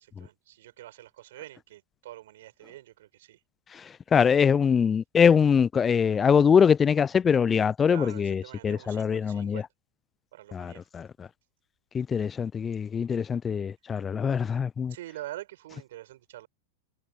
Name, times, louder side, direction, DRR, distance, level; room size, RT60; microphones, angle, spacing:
voice 1, 0.0-3.4 7.9-9.7 10.3-10.8 14.9-16.5, right 14 dB, 65° right, 7.4 m, -45 dB
voice 2, 3.7-9.6 10.5-11.3 11.9-14.9, left 7 dB, 20° left, 0.4 m, -23 dB
hypercardioid pair, 95°, 0 cm